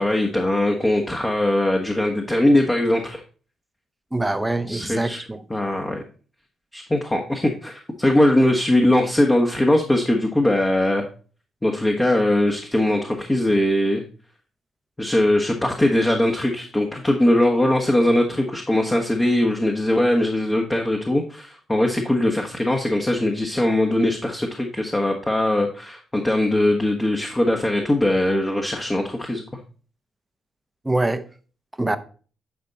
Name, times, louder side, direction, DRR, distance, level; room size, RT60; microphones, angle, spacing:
voice 1, 0.0-3.2 4.7-5.2 5.5-6.0 6.7-11.1 11.6-14.0 15.0-29.4, left 1 dB, 20° left, 1.5 m, -20 dB
voice 2, 4.1-5.4 30.8-31.3 31.8-32.0, right 2 dB, 15° right, 1.0 m, -24 dB
10.5 x 4.4 x 4.1 m
hypercardioid pair, 50°, 0 cm